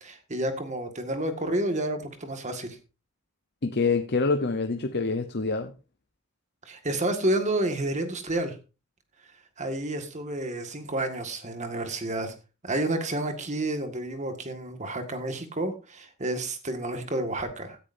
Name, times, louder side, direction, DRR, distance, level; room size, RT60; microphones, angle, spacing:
voice 1, 0.0-2.8 6.7-8.6 9.6-12.3 12.6-17.8, right 1 dB, 35° right, 1.8 m, -30 dB
voice 2, 3.6-5.7, left 4 dB, 50° left, 0.9 m, -26 dB
16.5 x 10.0 x 2.7 m
head